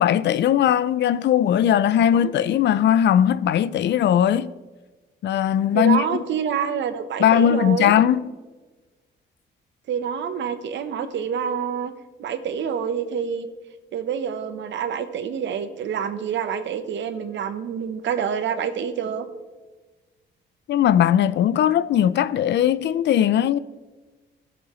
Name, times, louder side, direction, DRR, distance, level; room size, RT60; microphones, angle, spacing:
voice 1, 0.0-4.5 5.2-6.0 7.2-8.3 20.7-23.6, left 10 dB, 60° left, 0.4 m, -19 dB
voice 2, 5.7-7.9 9.9-11.9 12.2-13.5 13.9-19.2, right 7 dB, 65° right, 0.9 m, -27 dB
15.5 x 7.1 x 3.1 m
cardioid pair, 90°, 20 cm